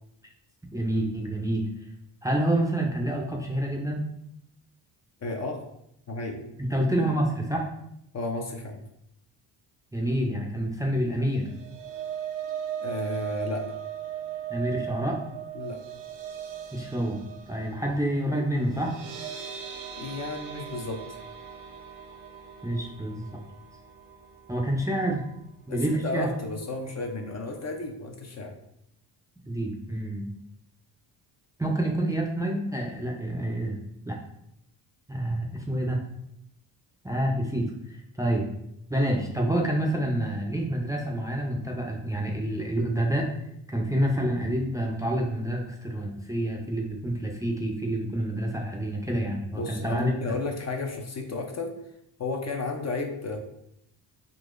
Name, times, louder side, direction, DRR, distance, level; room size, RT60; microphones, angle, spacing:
voice 1, 0.7-1.7 2.2-4.0 6.6-7.7 9.9-11.4 14.5-15.2 16.7-17.2 17.5-18.9 22.6-23.2 24.5-25.2 25.7-26.3 29.5-30.3 31.6-33.8 34.1-34.2 35.1-36.0 37.0-37.7 38.2-38.4 38.9-43.3 43.7-50.1, right 1 dB, 5° right, -1 dB, 0.5 m, -28 dB
voice 2, 5.2-5.6 6.1-6.4 8.1-8.8 12.8-13.8 15.5-15.8 19.9-21.0 25.7-28.5 49.5-51.8 52.2-53.4, left 3 dB, 35° left, 2 dB, 0.6 m, -33 dB
sound 1, 11.3-25.5 25.8-26.1 26.4-26.5, right 9 dB, 80° right, 0.7 m, -39 dB
3.8 x 2.8 x 2.5 m, 0.77 s
supercardioid pair, 65°, 47 cm